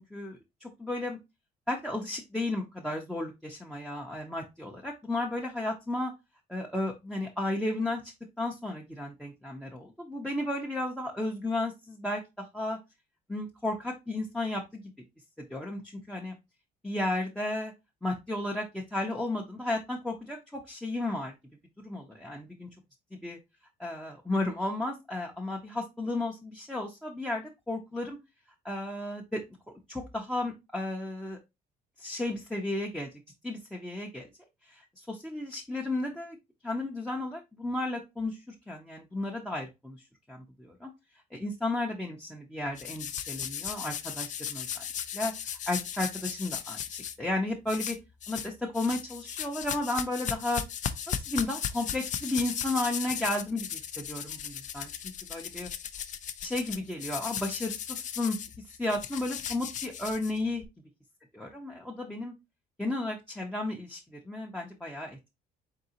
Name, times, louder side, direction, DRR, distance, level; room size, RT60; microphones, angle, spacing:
voice 1, 0.1-1.2 1.7-6.1 6.5-12.8 13.3-14.8 15.4-16.3 16.8-17.7 18.0-21.3 21.8-22.7 23.2-23.4 23.8-28.2 28.6-29.4 29.9-31.4 32.0-33.1 33.4-34.3 34.7-36.4 36.6-40.0 40.3-40.9 41.3-44.8 45.1-48.0 48.3-50.6 51.1-54.9 55.3-55.7 56.4-58.4 58.8-60.6 61.3-62.4 62.8-65.2, left 2 dB, 5° left, -1 dB, 0.6 m, -33 dB
sound 1, 42.8-47.1 47.7-48.5 48.7-60.6, left 9 dB, 45° left, 0.4 m, -36 dB
3.9 x 3.7 x 2.7 m, 0.23 s
cardioid pair, 110°, 17 cm